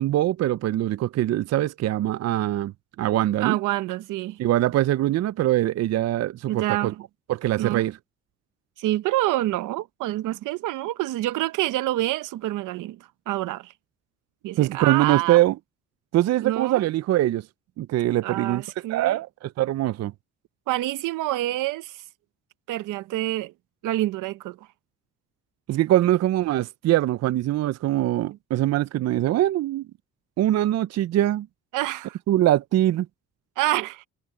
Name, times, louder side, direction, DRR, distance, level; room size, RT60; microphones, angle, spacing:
voice 1, 0.0-2.7 3.0-3.6 4.4-6.9 7.3-8.0 14.6-15.6 16.1-17.5 17.8-18.6 18.9-20.1 25.7-29.9 30.4-31.5 32.3-33.1, right 14 dB, 60° right, 0.5 m, -23 dB
voice 2, 3.4-4.4 6.5-7.0 7.6-7.8 8.8-13.7 14.4-15.4 16.4-16.9 18.2-19.2 20.7-22.0 22.7-23.5 23.8-24.6 31.7-32.2 33.6-34.0, right 16 dB, 90° right, 0.9 m, -27 dB
cardioid pair, 90°, 30 cm